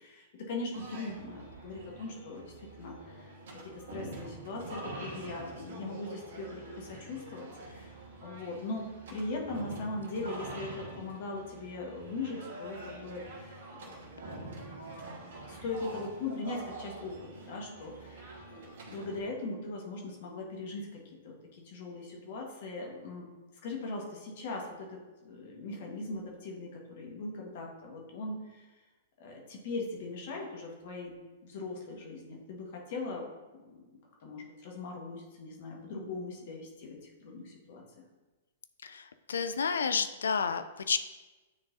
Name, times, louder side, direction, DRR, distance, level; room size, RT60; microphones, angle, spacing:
voice 1, 0.0-3.3 3.6-13.9 15.5-18.4 18.8-23.3 23.6-28.6 29.2-31.1 31.4-33.2 33.5-33.9 34.2-37.8, left 3 dB, 55° left, 0 dB, 1.3 m, -40 dB
sound 1, 0.7-19.2, right 2 dB, 65° right, 1.3 m, -46 dB
voice 2, 38.8-41.0, left 6 dB, 80° left, 11 dB, 0.3 m, -31 dB
9.5 x 3.8 x 2.6 m, 1.2 s
hypercardioid pair, 115°, 0 cm